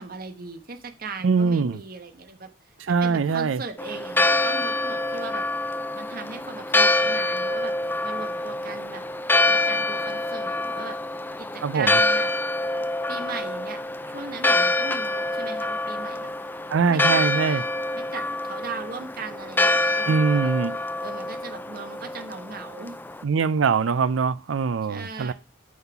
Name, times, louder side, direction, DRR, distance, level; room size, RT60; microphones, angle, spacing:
voice 1, 0.0-2.5 3.0-5.4 5.9-7.7 8.0-9.0 9.5-11.0 11.4-12.3 13.1-13.8 14.1-16.3 16.9-17.2 17.9-20.5 21.0-23.0 24.9-25.3, right 4 dB, 50° right, 1.1 m, -38 dB
voice 2, 1.2-1.8 2.8-3.6 11.6-12.0 16.7-17.6 20.1-20.7 23.2-25.3, right 5 dB, 80° right, 0.5 m, -22 dB
Church bell, 3.8-23.2, left 2 dB, 10° left, 0.5 m, -26 dB
9.4 x 5.6 x 6.0 m
head